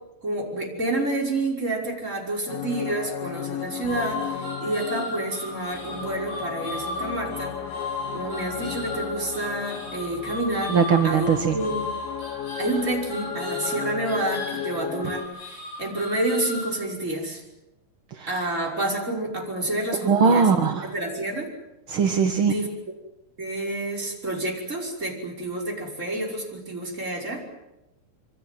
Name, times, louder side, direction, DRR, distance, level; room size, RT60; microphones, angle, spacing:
voice 1, 0.2-7.5 8.1-10.7 11.0-11.8 12.6-17.4 18.3-20.5 20.8-21.5 22.4-22.7 23.4-27.4, right 2 dB, 20° right, -1 dB, 5.8 m, -29 dB
sound 1, 2.5-15.3, left 10 dB, 75° left, 3.2 m, -35 dB
sound 2, 3.8-16.8, left 2 dB, 55° left, 8.5 m, -36 dB
voice 2, 10.7-11.6 18.1-18.5 20.0-20.9 21.9-22.5, right 5 dB, 50° right, 4 dB, 1.8 m, -20 dB
27.0 x 24.0 x 7.7 m, 0.93 s
omnidirectional pair, 4.3 m